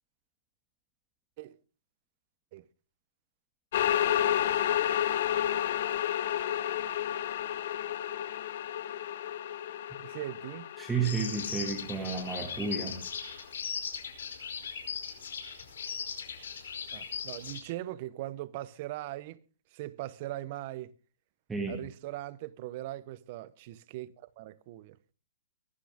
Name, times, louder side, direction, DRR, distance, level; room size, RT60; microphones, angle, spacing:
sound 1, 3.7-13.2, left 11 dB, 55° left, 1.0 m, -31 dB
voice 1, 10.0-10.7 16.9-19.4 19.7-20.9 21.7-25.0, right 15 dB, 40° right, 0.8 m, -40 dB
voice 2, 10.8-13.0 21.5-21.8, right 5 dB, 10° right, 2.0 m, -32 dB
sound 2, 11.0-17.6, left 7 dB, 80° left, 5.1 m, -38 dB
23.0 x 12.0 x 3.6 m
hypercardioid pair, 155°, 0 cm